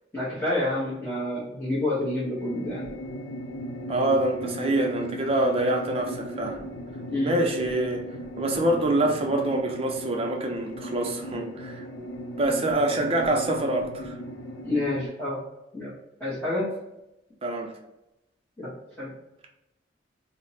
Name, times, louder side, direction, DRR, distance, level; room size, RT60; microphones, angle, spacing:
voice 1, 0.1-2.9 7.1-7.4 14.6-15.4 15.7-15.9 16.2-16.7 18.6-18.7 19.0-19.1, left 1 dB, 10° left, -12 dB, 0.9 m, -28 dB
sound 1, 2.4-15.1, equal, 70° left, 0.5 m, -37 dB
voice 2, 3.9-6.6 7.2-8.0 8.4-11.8 12.4-14.2 17.4-17.7, right 1 dB, 30° right, 3 dB, 0.5 m, -25 dB
3.4 x 2.0 x 2.7 m, 0.90 s
head